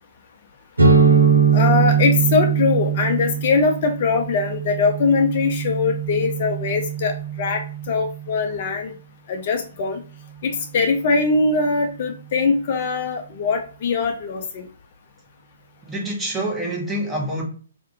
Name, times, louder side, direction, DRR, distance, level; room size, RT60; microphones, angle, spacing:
sound 1, 0.8-8.4, right 6 dB, 80° right, 0.6 m, -21 dB
voice 1, 1.5-8.9 9.3-10.0 10.4-14.6, left 4 dB, 45° left, 0.3 m, -21 dB
voice 2, 15.8-17.4, right 1 dB, 10° right, 0.7 m, -26 dB
2.3 x 2.0 x 2.6 m
figure-of-eight pair, 125°, 0 cm